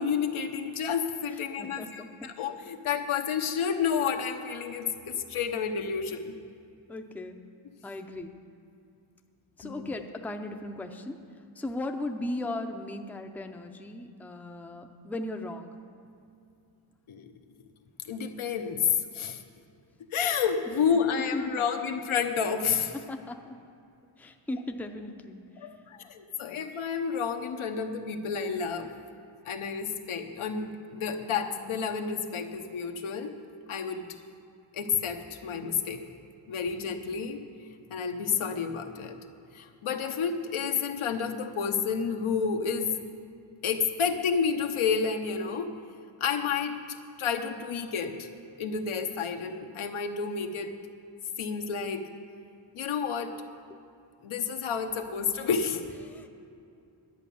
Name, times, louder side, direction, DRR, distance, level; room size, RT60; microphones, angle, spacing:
voice 1, 0.0-6.3 9.6-9.9 17.1-17.3 18.0-19.4 20.1-22.9 25.6-28.9 29.4-33.3 33.7-34.1 34.7-36.0 36.5-37.4 37.9-39.2 39.5-42.9 43.6-45.7 46.2-48.3 48.6-50.7 51.4-52.1 52.7-53.3 54.2-55.8, left 6 dB, 80° left, 4 dB, 1.0 m, -30 dB
voice 2, 1.3-2.3 6.9-7.4 7.8-8.4 9.6-15.7 21.2-21.6 22.9-23.6 24.2-25.7 56.0-56.3, left 1 dB, 5° left, 4 dB, 0.5 m, -37 dB
11.0 x 8.2 x 6.9 m, 2.5 s
wide cardioid pair, 125°, 48 cm